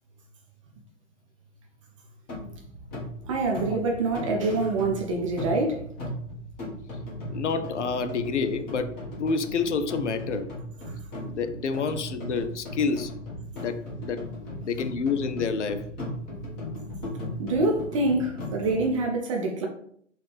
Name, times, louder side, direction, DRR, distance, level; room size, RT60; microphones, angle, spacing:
sound 1, 2.3-18.9, left 1 dB, 20° left, 1.1 m, -37 dB
voice 1, 3.3-5.8 17.4-19.7, right 2 dB, 25° right, 0.5 m, -26 dB
voice 2, 7.3-10.5 11.2-13.1 13.5-14.3 14.6-15.9, left 5 dB, 70° left, 0.5 m, -28 dB
3.8 x 2.4 x 3.2 m
figure-of-eight pair, 115°, 38 cm